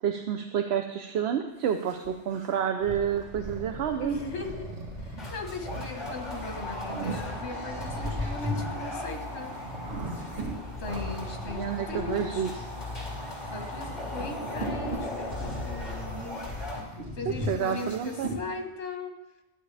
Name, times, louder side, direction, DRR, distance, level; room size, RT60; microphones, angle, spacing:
voice 1, 0.0-4.1 11.4-12.5 17.4-18.3, right 8 dB, 75° right, 5 dB, 0.9 m, -29 dB
sound 1, 1.6-12.0 12.3-13.3 13.8-17.0, right 2 dB, 40° right, 1.0 m, -45 dB
sound 2, 2.8-16.8, left 2 dB, 40° left, 2.8 m, -37 dB
voice 2, 4.0-9.5 10.8-12.4 13.5-16.4 17.1-19.1, left 2 dB, 75° left, 3 dB, 1.6 m, -38 dB
sound 3, 6.3-11.2 11.8-18.4, equal, 60° right, 2.6 m, -38 dB
12.0 x 9.9 x 3.3 m, 1.0 s
omnidirectional pair, 1.1 m